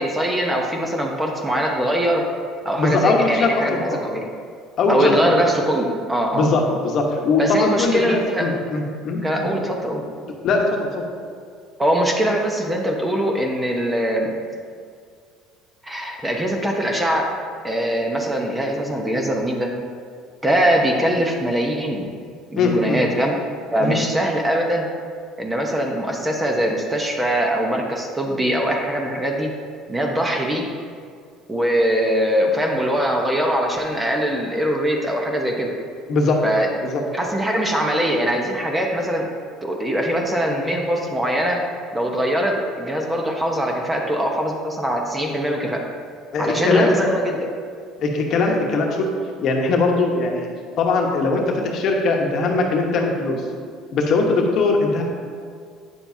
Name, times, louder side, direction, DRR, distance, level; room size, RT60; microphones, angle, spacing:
voice 1, 0.0-2.2 2.6-4.2 4.9-6.8 7.4-8.5 9.2-10.0 11.8-14.3 15.8-17.3 17.6-19.7 20.4-22.1 22.5-24.9 25.4-29.5 29.9-30.6 31.5-35.7 36.4-36.7 37.1-39.3 39.6-41.6 41.9-45.8 46.4-47.5, equal, 15° right, 1 dB, 0.8 m, -22 dB
voice 2, 2.8-4.0 4.8-5.4 6.3-9.5 10.4-11.0 22.6-23.0 23.8-24.0 36.1-36.4 36.8-37.0 46.3-46.9 48.0-49.1 49.4-50.5 50.8-53.4 53.9-55.0, left 3 dB, 55° left, 1 dB, 1.1 m, -20 dB
8.8 x 6.8 x 2.7 m, 2.1 s
cardioid pair, 115°, 0 cm